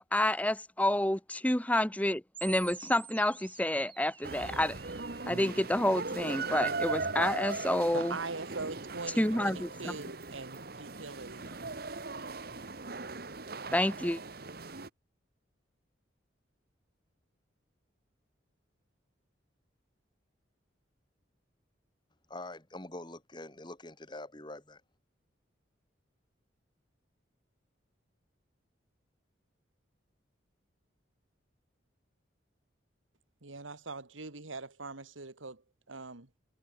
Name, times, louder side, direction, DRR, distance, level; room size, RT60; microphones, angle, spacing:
voice 1, 0.0-4.8 5.3-8.2 9.2-9.9 13.7-14.2, left 1 dB, 5° left, 1.2 m, -29 dB
sound 1, 2.3-5.3, right 8 dB, 25° right, 7.3 m, -49 dB
sound 2, 4.2-14.9, right 3 dB, 50° right, 1.5 m, -39 dB
voice 2, 7.9-11.5 33.4-35.6 35.9-36.3, right 3 dB, 85° right, 2.2 m, -42 dB
voice 3, 22.3-24.8, left 1 dB, 25° left, 2.6 m, -44 dB
head